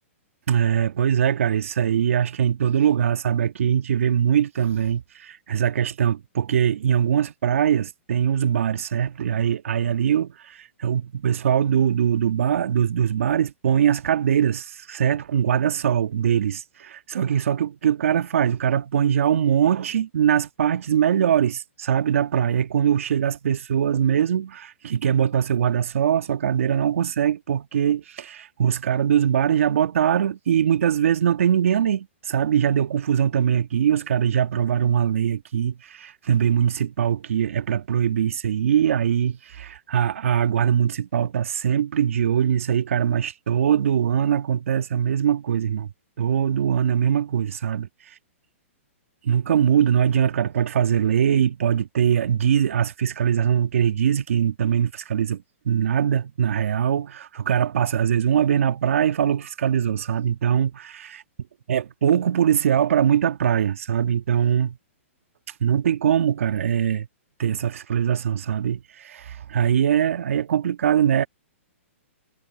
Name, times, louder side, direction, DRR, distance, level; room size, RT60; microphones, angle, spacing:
voice 1, 0.5-45.9 46.2-47.9 49.2-61.2 61.7-64.8 65.6-67.1 67.4-71.3, right 9 dB, 70° right, 1.5 m, -22 dB
hypercardioid pair, 135°, 7 cm